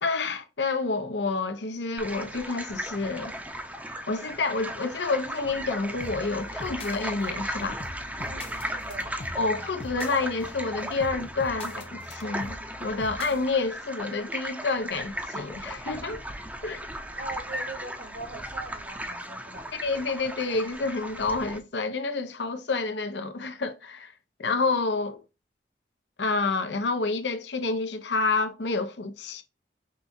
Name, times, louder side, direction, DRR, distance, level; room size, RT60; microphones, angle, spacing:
voice 1, 0.0-3.3 4.1-7.8 9.4-16.2 16.6-16.8 19.7-24.1 24.4-25.2 26.2-29.4, left 3 dB, 90° left, 0.8 m, -29 dB
sound 1, 2.0-21.6, equal, 10° right, 0.6 m, -36 dB
sound 2, 5.9-13.5, left 2 dB, 35° left, 0.6 m, -43 dB
voice 2, 8.3-9.1 17.2-19.7, right 3 dB, 60° right, 1.2 m, -41 dB
5.7 x 3.5 x 2.6 m
head